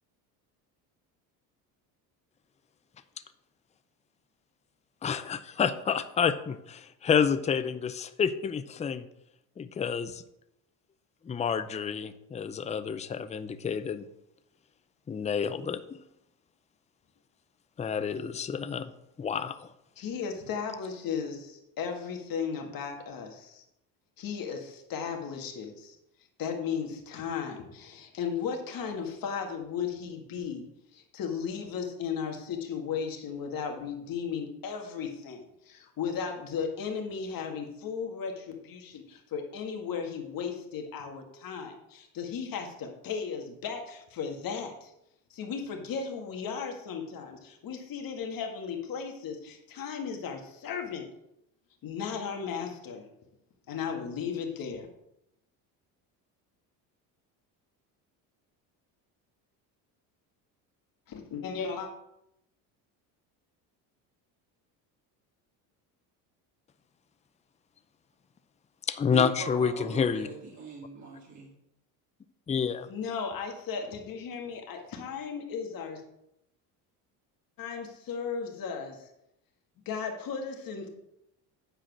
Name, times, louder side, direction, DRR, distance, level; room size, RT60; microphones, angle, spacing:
voice 1, 5.0-9.1 9.6-10.2 11.2-14.0 15.1-15.8 17.8-18.9 19.2-19.7 68.9-70.3 72.5-72.9, left 7 dB, 15° left, 12 dB, 0.5 m, -29 dB
voice 2, 20.0-23.7 24.2-26.0 26.4-44.9 45.3-51.1 51.8-53.1 53.7-54.9 61.1-61.9 72.9-76.0 77.6-79.1 79.9-80.9, left 6 dB, 50° left, 3 dB, 1.9 m, -35 dB
voice 3, 69.1-71.5, right 5 dB, 40° right, -3 dB, 2.1 m, -40 dB
8.9 x 4.9 x 6.1 m, 0.81 s
supercardioid pair, 90°, 43 cm